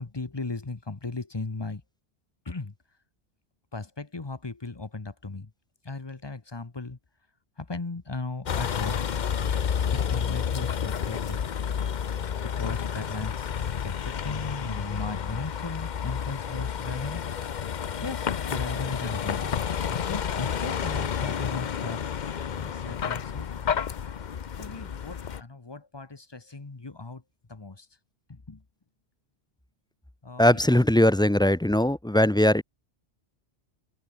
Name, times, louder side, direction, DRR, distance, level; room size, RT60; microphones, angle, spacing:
voice 1, 0.0-1.8 2.4-2.7 3.7-5.5 5.8-7.0 7.6-9.1 9.9-11.4 12.4-17.2 18.0-19.6 19.9-22.0 22.5-23.5 24.6-27.2 27.5-27.9 28.3-28.6 30.2-30.9, left 3 dB, 25° left, 1.1 m, -37 dB
Vehicle, 8.5-25.4, left 8 dB, 50° left, 0.8 m, -30 dB
voice 2, 30.4-32.6, left 1 dB, 5° left, 0.5 m, -20 dB
omnidirectional pair, 1.1 m